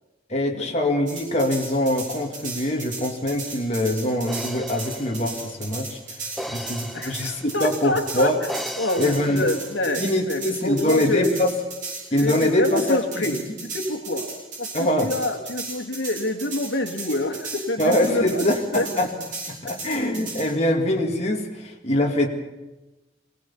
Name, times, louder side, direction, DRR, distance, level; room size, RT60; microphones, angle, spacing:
voice 1, 0.3-6.0 6.5-8.4 9.0-9.5 10.0-11.5 12.1-13.5 14.7-15.1 17.8-19.1 19.5-22.3, left 1 dB, 35° left, 1 dB, 2.2 m, -23 dB
sound 1, 1.1-20.5, right 3 dB, 40° right, 7.5 m, -35 dB
sound 2, 4.3-7.8 8.5-9.8, equal, ahead, 0.6 m, -37 dB
voice 2, 6.9-8.3 8.8-11.3 12.1-14.3 14.6-18.9, left 1 dB, 75° left, 5 dB, 1.9 m, -27 dB
22.0 x 18.0 x 7.0 m, 1.1 s
head